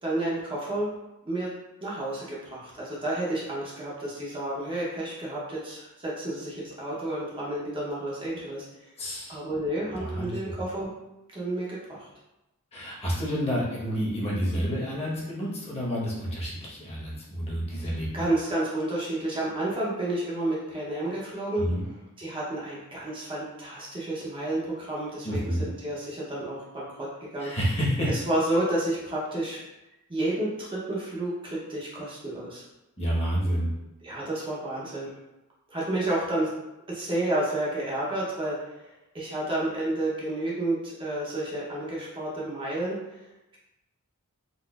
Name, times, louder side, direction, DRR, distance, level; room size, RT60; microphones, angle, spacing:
voice 1, 0.0-0.9 1.3-1.5 1.8-8.7 9.3-10.9 11.3-12.1 17.7-21.6 22.2-27.5 28.1-29.6 30.1-32.6 34.0-35.1 35.7-36.5 36.9-43.2, right 1 dB, 25° right, -6 dB, 0.6 m, -31 dB
voice 2, 9.0-9.4 9.9-10.3 12.7-18.1 21.6-21.8 25.2-25.7 27.4-28.1 33.0-33.7, equal, 30° left, -6 dB, 0.9 m, -29 dB
4.0 x 2.4 x 2.3 m, 0.97 s
head